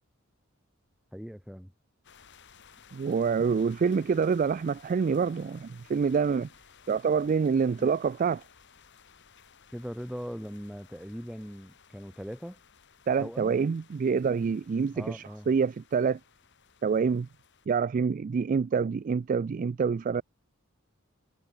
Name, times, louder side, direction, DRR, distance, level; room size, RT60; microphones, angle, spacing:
voice 1, 1.1-1.7 7.8-7.9 9.7-12.6 13.2-13.6 14.9-15.5, equal, 5° right, 2.2 m, -40 dB
sound 1, 2.0-17.7, left 7 dB, 60° left, 1.9 m, -58 dB
voice 2, 2.9-6.5 6.9-8.4 13.1-16.2 16.8-17.3 17.7-20.2, right 5 dB, 40° right, 0.3 m, -26 dB
head